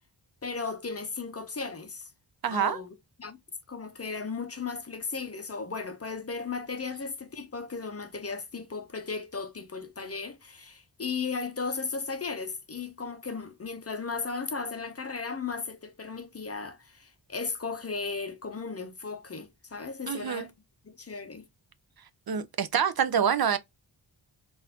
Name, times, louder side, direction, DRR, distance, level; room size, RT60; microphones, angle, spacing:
voice 1, 0.4-2.1 2.5-3.4 3.7-20.5 20.8-21.5, left 4 dB, 35° left, 0.5 m, -36 dB
voice 2, 2.4-2.8 20.1-20.5 22.3-23.6, right 8 dB, 55° right, 0.5 m, -26 dB
3.9 x 2.5 x 2.7 m
wide cardioid pair, 115°, 46 cm